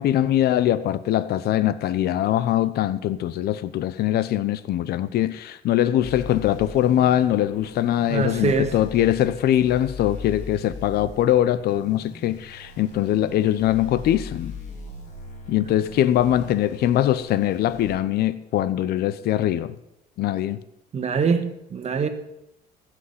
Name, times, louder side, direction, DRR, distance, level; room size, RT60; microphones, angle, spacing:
voice 1, 0.0-14.5 15.5-19.7 20.2-20.6, left 12 dB, 70° left, 0.8 m, -22 dB
sound 1, 6.0-17.9, left 4 dB, 45° left, 3.8 m, -40 dB
voice 2, 8.1-8.8 20.9-22.1, right 5 dB, 40° right, 1.7 m, -23 dB
15.5 x 6.3 x 9.6 m
cardioid pair, 110°, 17 cm